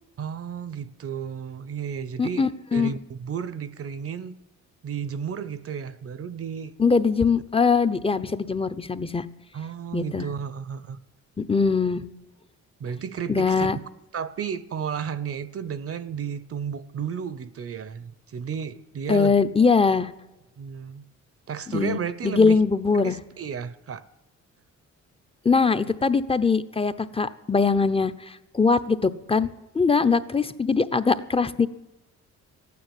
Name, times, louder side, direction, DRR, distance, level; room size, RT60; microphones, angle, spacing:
voice 1, 0.2-4.4 4.8-6.7 9.5-11.0 12.8-13.7 14.1-19.3 20.6-21.0 21.5-22.6 23.0-24.0, right 7 dB, 50° right, 17 dB, 0.9 m, -33 dB
voice 2, 2.2-3.0 6.8-9.2 9.9-10.3 11.4-12.0 13.3-13.8 19.1-20.1 21.7-22.0 22.2-23.2 25.4-29.5 29.7-31.7, left 4 dB, 20° left, 12 dB, 0.9 m, -22 dB
14.0 x 9.5 x 9.1 m, 1.0 s
cardioid pair, 90°, 30 cm